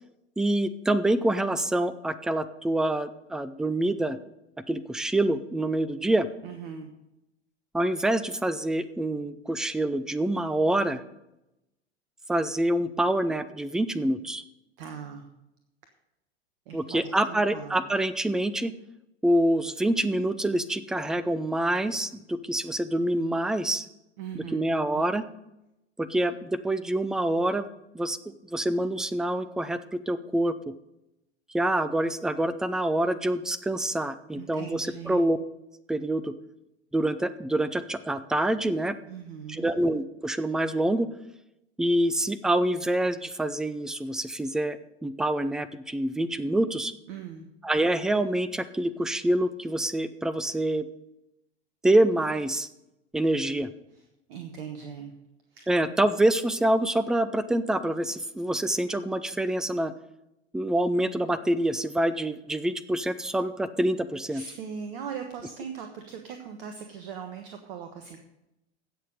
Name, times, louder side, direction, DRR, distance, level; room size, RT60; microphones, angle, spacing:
voice 1, 0.4-4.2 4.7-6.3 7.7-11.0 12.3-14.4 16.7-18.7 19.2-23.9 24.4-25.2 26.0-27.7 27.9-30.7 31.5-35.4 35.9-36.3 36.9-39.0 39.5-41.1 41.8-46.9 47.6-50.9 51.8-52.7 53.1-53.7 55.7-59.9 60.5-64.4, right 1 dB, ahead, 15 dB, 0.4 m, -26 dB
voice 2, 6.4-6.9 14.8-15.3 16.7-17.8 24.2-25.1 34.3-35.3 39.1-39.7 47.1-47.5 53.9-55.1 55.5-55.7 64.3-68.2, right 7 dB, 50° right, 6 dB, 1.3 m, -40 dB
16.5 x 6.5 x 5.3 m, 0.90 s
figure-of-eight pair, 80°, 34 cm